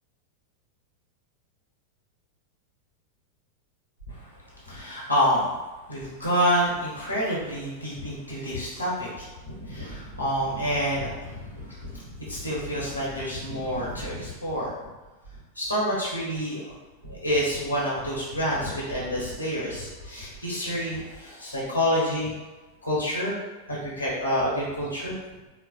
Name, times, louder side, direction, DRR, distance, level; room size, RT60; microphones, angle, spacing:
voice 1, 4.6-5.5 5.9-14.7 15.5-16.7 17.0-22.3 22.8-23.4 23.7-25.2, equal, 90° left, -7 dB, 1.0 m, -28 dB
4.3 x 2.1 x 2.4 m, 1.2 s
figure-of-eight pair, 90°, 0 cm